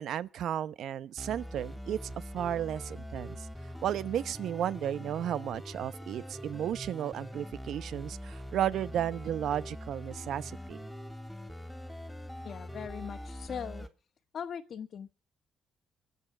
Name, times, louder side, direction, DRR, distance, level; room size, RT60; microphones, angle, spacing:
voice 1, 0.0-2.0 2.3-3.5 3.8-10.8, right 10 dB, 75° right, 1.0 m, -33 dB
sound 1, 1.2-13.9, equal, ahead, 3.3 m, -43 dB
voice 2, 12.4-13.9 14.3-15.1, left 8 dB, 55° left, 1.4 m, -40 dB
24.0 x 8.3 x 6.1 m
cardioid pair, 90°, 0 cm